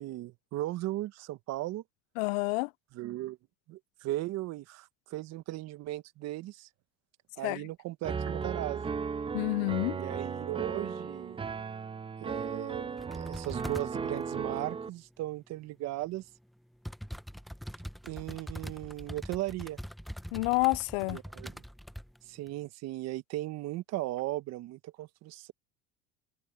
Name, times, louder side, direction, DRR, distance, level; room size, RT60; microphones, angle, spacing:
voice 1, 0.0-1.8 2.9-3.4 3.7-6.7 7.4-8.9 10.0-11.4 12.2-16.2 18.0-19.8 21.1-21.6 22.3-25.5, right 16 dB, 55° right, 1.3 m, -37 dB
voice 2, 2.2-2.7 7.4-7.6 9.3-10.0 20.3-21.2, left 28 dB, 75° left, 0.5 m, -28 dB
Piano, 8.0-14.9, right 5 dB, 15° right, 0.7 m, -36 dB
sound 1, 13.0-13.9 16.0-16.1 16.8-22.2 22.5-22.6, equal, ahead, 1.2 m, -43 dB
supercardioid pair, 90°, 31 cm